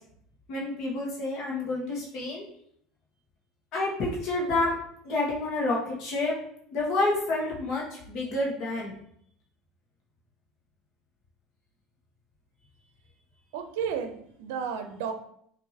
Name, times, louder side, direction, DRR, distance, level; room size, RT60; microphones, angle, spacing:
voice 1, 0.5-2.4 3.7-4.8 5.0-6.3 6.7-8.9, left 2 dB, 60° left, -3 dB, 1.1 m, -29 dB
voice 2, 13.5-15.1, right 7 dB, 85° right, 7 dB, 0.5 m, -32 dB
6.1 x 2.6 x 2.8 m, 0.68 s
supercardioid pair, 105°, 0 cm